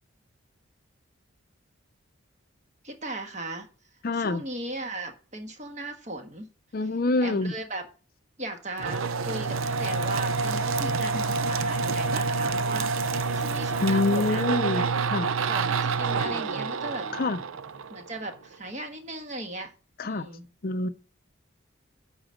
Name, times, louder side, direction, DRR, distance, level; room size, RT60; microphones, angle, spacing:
voice 1, 2.8-3.7 4.1-6.5 7.2-7.8 8.4-14.4 14.7-14.9 15.4-17.1 17.9-19.7 20.0-20.5, right 2 dB, 35° right, 1.4 m, -37 dB
voice 2, 4.0-4.4 6.7-7.5 13.8-15.3 17.1-17.4 20.0-20.3 20.6-20.9, left 2 dB, 45° left, 0.5 m, -26 dB
sound 1, 8.8-18.3, right 4 dB, 85° right, 0.6 m, -28 dB
10.0 x 4.0 x 7.4 m
head